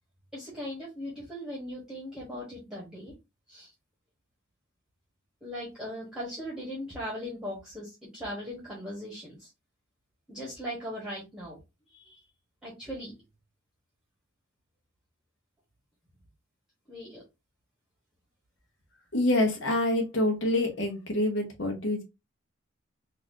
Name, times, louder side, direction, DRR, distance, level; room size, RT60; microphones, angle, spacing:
voice 1, 0.3-3.1 3.5-3.7 5.4-9.5 10.3-11.6 11.9-12.2 12.6-13.1 16.9-17.2, equal, 5° right, -5 dB, 1.2 m, -39 dB
voice 2, 19.1-22.0, left 1 dB, 60° left, 2 dB, 1.0 m, -26 dB
4.0 x 2.5 x 2.5 m, 0.23 s
head